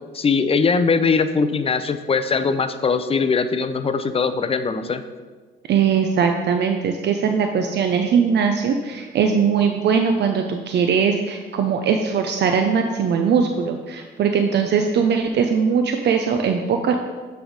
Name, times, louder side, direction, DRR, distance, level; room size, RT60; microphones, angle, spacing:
voice 1, 0.1-5.0, left 5 dB, 30° left, 10 dB, 0.5 m, -21 dB
voice 2, 5.7-17.0, right 6 dB, 60° right, 4 dB, 0.5 m, -20 dB
8.5 x 3.4 x 5.1 m, 1.4 s
cardioid pair, 90°, 20 cm